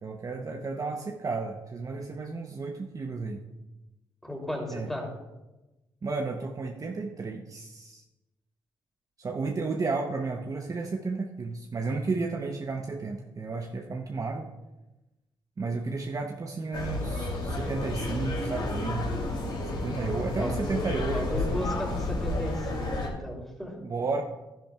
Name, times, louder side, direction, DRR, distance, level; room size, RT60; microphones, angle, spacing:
voice 1, 0.0-3.4 4.7-4.9 6.0-8.0 9.2-14.5 15.6-19.1 19.8-21.4 23.8-24.2, right 3 dB, 35° right, 2 dB, 0.8 m, -32 dB
voice 2, 4.2-5.1 19.9-23.7, equal, 5° left, 0 dB, 3.0 m, -35 dB
sound 1, 16.7-23.1, left 2 dB, 50° left, 2.8 m, -31 dB
11.5 x 10.5 x 2.3 m, 1.0 s
cardioid pair, 70°, 10 cm